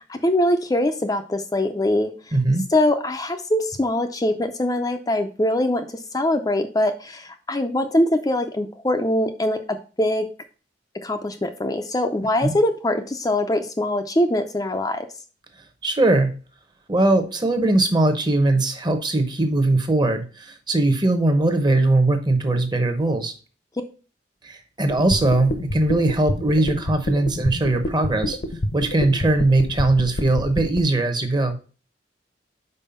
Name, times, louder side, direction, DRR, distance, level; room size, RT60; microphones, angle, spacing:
voice 1, 0.1-2.1 2.7-5.8 6.1-10.3 11.0-15.0, left 1 dB, 20° left, 5 dB, 0.5 m, -22 dB
voice 2, 2.3-2.7 12.4-12.5 15.8-16.3 16.9-23.3 24.4-28.4 28.7-31.5, right 2 dB, 25° right, 7 dB, 0.9 m, -20 dB
sound 1, 24.9-30.8, left 1 dB, 55° left, 0.8 m, -26 dB
5.5 x 4.5 x 5.6 m, 0.36 s
head